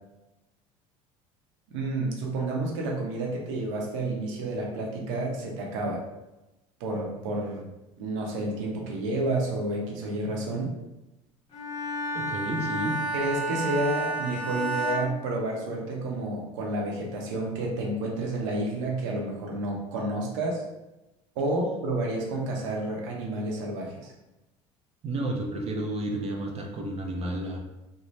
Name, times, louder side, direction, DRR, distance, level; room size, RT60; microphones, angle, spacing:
voice 1, 1.7-6.0 6.8-7.7 8.0-10.7 13.1-20.6 21.4-24.1, right 2 dB, 85° right, -1 dB, 0.7 m, -30 dB
Bowed string instrument, 11.5-16.0, right 1 dB, 40° left, 1.1 m, -31 dB
voice 2, 12.1-13.0 25.0-27.6, right 1 dB, 40° right, 1 dB, 0.6 m, -31 dB
2.6 x 2.1 x 3.2 m, 0.98 s
supercardioid pair, 85°, 16 cm